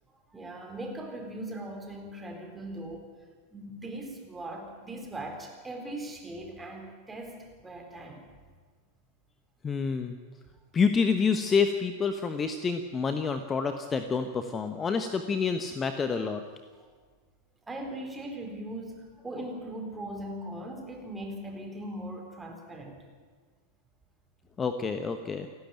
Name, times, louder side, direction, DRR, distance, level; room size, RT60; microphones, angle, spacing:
voice 1, 0.3-3.1 3.5-8.2 17.7-23.0, right 1 dB, 10° right, 3 dB, 4.1 m, -39 dB
voice 2, 9.6-10.1 10.7-16.4 24.6-25.5, left 5 dB, 20° left, 9 dB, 1.1 m, -28 dB
28.5 x 12.0 x 9.2 m, 1.5 s
figure-of-eight pair, 90°, 0 cm